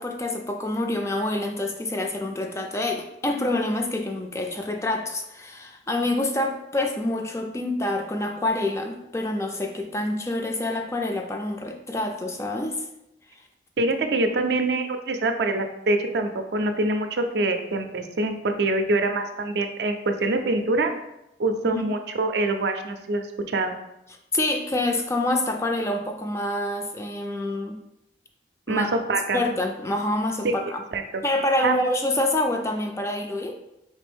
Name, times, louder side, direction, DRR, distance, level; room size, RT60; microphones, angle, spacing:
voice 1, 0.0-12.8 21.6-21.8 24.3-27.8 28.7-28.9 29.3-30.8 31.2-33.6, left 1 dB, 15° left, 4 dB, 0.3 m, -27 dB
voice 2, 13.8-20.9 21.4-23.7 28.7-29.4 30.4-30.5 30.9-31.2 31.6-31.7, right 2 dB, 70° right, 6 dB, 0.4 m, -25 dB
4.2 x 3.4 x 3.4 m, 0.87 s
head